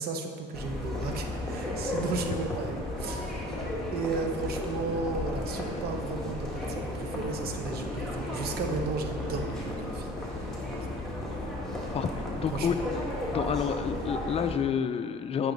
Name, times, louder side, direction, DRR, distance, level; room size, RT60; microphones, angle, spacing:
voice 1, 0.0-3.6 3.9-10.9 12.5-12.7, right 4 dB, 65° right, 4 dB, 0.9 m, -35 dB
sound 1, 0.5-14.5, left 1 dB, ahead, 1.8 m, -34 dB
voice 2, 11.9-12.7 13.3-15.5, left 7 dB, 35° left, 10 dB, 0.4 m, -29 dB
8.9 x 6.0 x 4.0 m, 2.2 s
cardioid pair, 110°, 17 cm